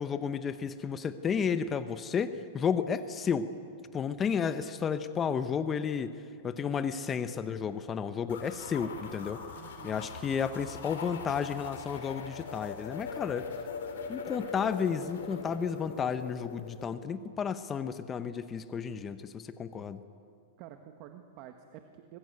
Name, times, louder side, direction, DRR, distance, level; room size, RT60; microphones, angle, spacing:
voice 1, 0.0-3.5 3.9-6.2 6.4-9.4 9.8-13.5 14.1-20.0, left 6 dB, 20° left, 11 dB, 0.9 m, -32 dB
sound 1, 8.3-16.9, left 5 dB, 85° left, 4.4 m, -42 dB
voice 2, 9.5-10.1 20.6-22.2, right 11 dB, 45° right, 6 dB, 1.5 m, -49 dB
25.5 x 20.5 x 8.1 m, 2.4 s
supercardioid pair, 145°, 0 cm